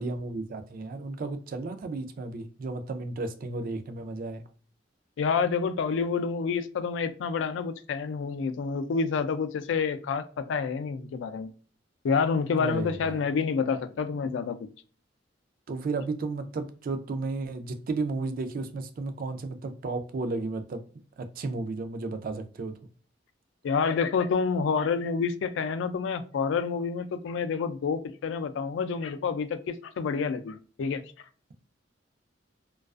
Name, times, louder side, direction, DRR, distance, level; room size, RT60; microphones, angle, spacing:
voice 1, 0.0-4.4 12.6-13.3 15.7-20.8 21.2-22.7, right 3 dB, 50° right, 0.4 m, -33 dB
voice 2, 5.2-11.5 12.0-14.6 23.6-31.0, left 5 dB, 75° left, 0.3 m, -28 dB
2.3 x 2.3 x 2.3 m
head